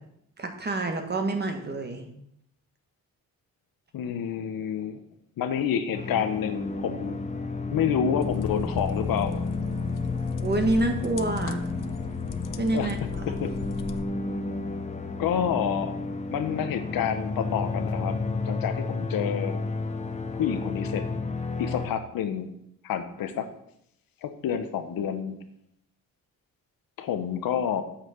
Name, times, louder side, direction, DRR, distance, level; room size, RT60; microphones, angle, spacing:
voice 1, 0.4-2.1 10.4-11.6 12.6-13.0, right 2 dB, 30° right, 5 dB, 1.5 m, -27 dB
voice 2, 3.9-5.0 5.4-7.2 7.7-9.4 12.7-12.9 13.3-13.5 15.2-16.0 16.3-18.2 18.4-19.6 20.3-21.0 21.6-22.5 22.8-23.5 24.2-25.4 27.0-27.8, left 8 dB, 80° left, 9 dB, 1.1 m, -28 dB
sound 1, 5.9-21.9, left 3 dB, 20° left, 0.9 m, -31 dB
sound 2, 8.2-14.0, left 8 dB, 65° left, 0.7 m, -38 dB
8.3 x 5.9 x 6.6 m, 0.73 s
cardioid pair, 125°, 34 cm